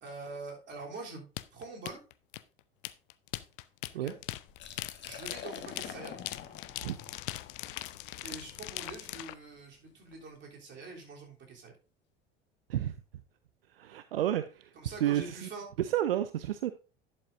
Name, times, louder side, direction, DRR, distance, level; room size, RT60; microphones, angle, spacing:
voice 1, 0.0-1.2 1.5-2.0 4.0-4.1 5.0-6.2 8.2-11.7 14.7-15.7, right 3 dB, 40° right, 0 dB, 3.3 m, -44 dB
sound 1, 1.4-9.3, left 17 dB, 60° left, 0.5 m, -41 dB
Liquid, 4.5-10.2, left 8 dB, 40° left, 1.3 m, -48 dB
voice 2, 13.7-14.7 15.0-15.5 15.8-16.7, right 12 dB, 75° right, 12 dB, 0.5 m, -31 dB
11.5 x 7.6 x 2.6 m, 0.34 s
figure-of-eight pair, 70°, 29 cm